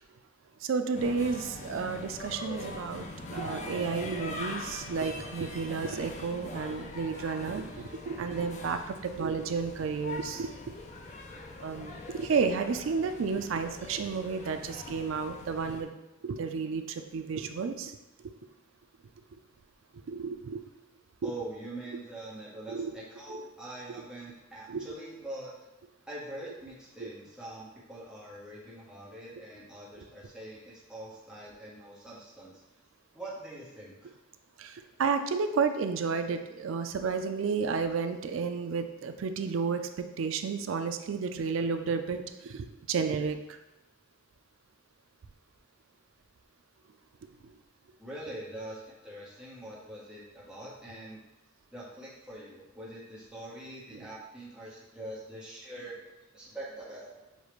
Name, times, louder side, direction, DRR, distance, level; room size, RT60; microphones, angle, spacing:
voice 1, 0.6-7.7 7.9-10.5 11.6-15.9 16.2-17.9 20.1-20.6 21.2-21.3 22.7-22.9 24.7-24.9 27.0-27.1 34.6-43.4 53.9-54.1, right 5 dB, 65° right, 8 dB, 0.4 m, -32 dB
sound 1, 0.9-15.8, left 2 dB, 35° left, 0.4 m, -42 dB
voice 2, 21.2-25.5 26.1-32.6 33.1-34.2 48.0-51.2 51.7-56.0 56.3-57.2, right 1 dB, 5° right, -7 dB, 1.0 m, -43 dB
6.7 x 2.4 x 3.1 m, 1.0 s
head